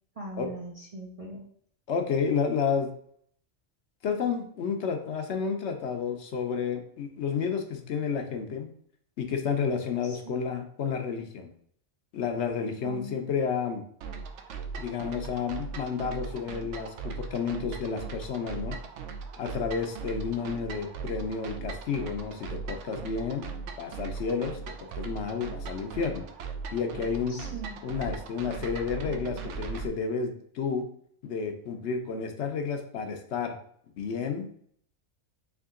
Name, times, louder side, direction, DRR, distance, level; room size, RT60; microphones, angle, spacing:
voice 1, 0.2-1.4 10.0-10.4 12.8-13.2 27.3-27.8, right 2 dB, 40° right, -2 dB, 0.5 m, -40 dB
voice 2, 1.9-2.9 4.0-8.7 9.2-11.5 12.1-13.8 14.8-18.7 19.4-23.5 23.8-24.6 24.9-26.2 26.7-27.4 27.8-30.8 31.2-33.5 34.0-34.5, left 6 dB, 70° left, 5 dB, 0.9 m, -31 dB
sound 1, 14.0-29.9, right 5 dB, 75° right, 0.9 m, -39 dB
3.6 x 3.2 x 3.6 m, 0.63 s
omnidirectional pair, 1.3 m